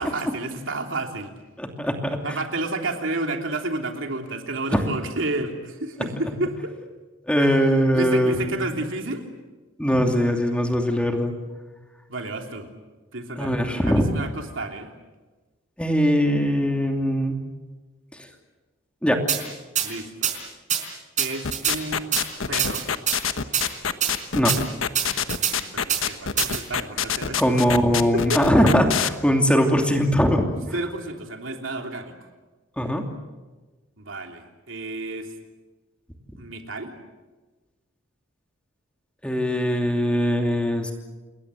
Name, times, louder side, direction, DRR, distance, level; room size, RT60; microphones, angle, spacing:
voice 1, 0.0-1.3 2.2-6.6 7.4-7.6 7.9-9.3 12.1-12.7 13.1-14.9 19.8-20.3 21.2-22.2 22.5-22.9 25.5-27.6 28.1-28.4 30.5-32.1 34.0-35.3 36.4-37.0, right 2 dB, 75° right, 3 dB, 3.2 m, -31 dB
voice 2, 1.6-2.2 4.7-4.8 7.3-8.6 9.8-11.3 13.4-14.1 15.8-17.4 19.0-19.2 24.3-24.5 27.4-30.4 32.8-33.0 39.2-40.9, equal, 5° left, 3 dB, 2.7 m, -21 dB
sound 1, 19.3-19.4 19.8-19.9 20.2-20.3 20.7-20.8 21.2-21.8 22.1-22.2 22.6-23.2 23.5-23.6 24.0-24.1 24.5-24.6 24.9-25.5 25.9-26.0 26.4-26.6, right 9 dB, 40° right, 4.4 m, -23 dB
sound 2, 21.4-29.1, left 7 dB, 85° left, 1.3 m, -25 dB
29.0 x 21.0 x 7.7 m, 1.2 s
head